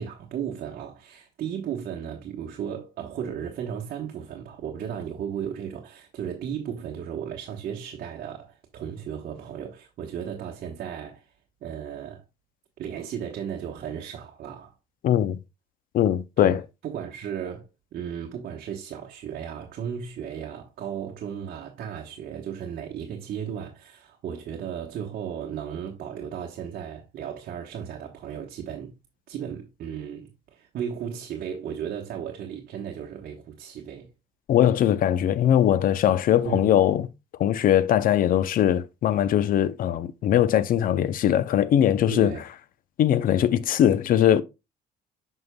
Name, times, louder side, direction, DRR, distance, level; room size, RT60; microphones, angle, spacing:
voice 1, 0.0-11.3 11.6-12.2 12.8-14.7 16.4-28.9 29.3-34.1 36.4-36.7 42.1-42.4, right 8 dB, 60° right, 1.1 m, -35 dB
voice 2, 15.0-15.4 15.9-16.6 34.5-37.1 37.4-42.3 43.0-44.4, left 10 dB, 55° left, 0.6 m, -21 dB
7.8 x 5.6 x 2.2 m
cardioid pair, 110°, 17 cm